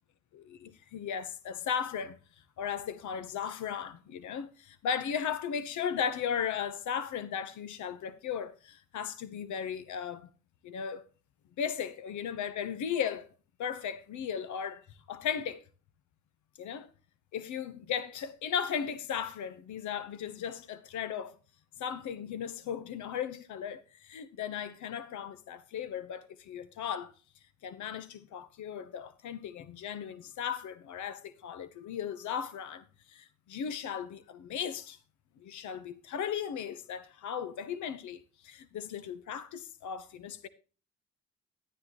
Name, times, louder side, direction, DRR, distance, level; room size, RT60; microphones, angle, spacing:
voice 1, 0.3-2.2 2.6-10.3 10.6-11.0 11.6-13.3 13.6-14.8 15.1-15.6 16.6-16.9 17.3-21.4 21.8-27.1 27.6-35.0 35.4-40.5, left 8 dB, 75° left, 1.0 m, -36 dB
12.0 x 9.8 x 3.1 m
cardioid pair, 90°, 30 cm